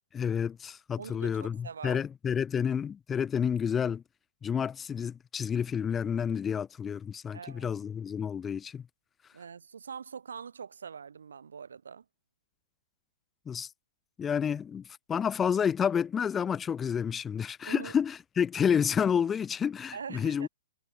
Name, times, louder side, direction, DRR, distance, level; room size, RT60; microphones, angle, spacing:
voice 1, 0.1-4.0 4.4-8.8 13.5-13.7 14.2-14.8 15.1-20.5, left 7 dB, 15° left, 0.5 m, -29 dB
voice 2, 1.0-2.1 7.3-7.7 9.3-12.0 17.6-17.9 19.9-20.5, right 6 dB, 75° right, 2.5 m, -43 dB
hypercardioid pair, 120°, 0 cm